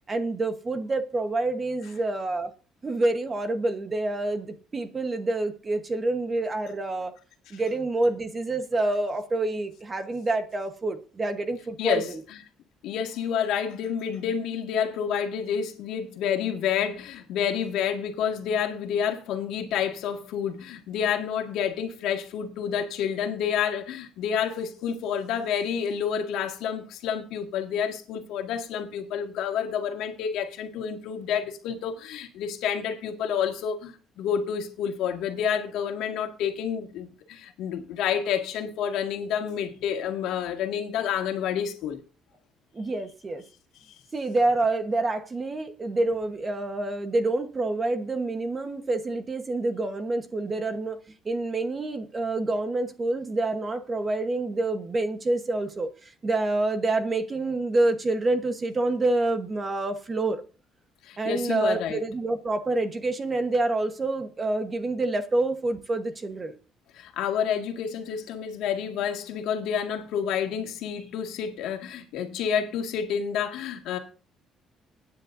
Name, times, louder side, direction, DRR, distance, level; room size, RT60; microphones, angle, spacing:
voice 1, 0.1-2.5 2.8-7.1 7.5-12.2 42.7-43.4 44.1-60.4 61.2-66.5, right 2 dB, 20° right, 1.2 m, -27 dB
voice 2, 11.8-12.4 12.8-42.0 61.0-62.0 67.0-74.0, left 8 dB, 80° left, 2.0 m, -29 dB
21.5 x 9.8 x 2.7 m
cardioid pair, 165°, 0 cm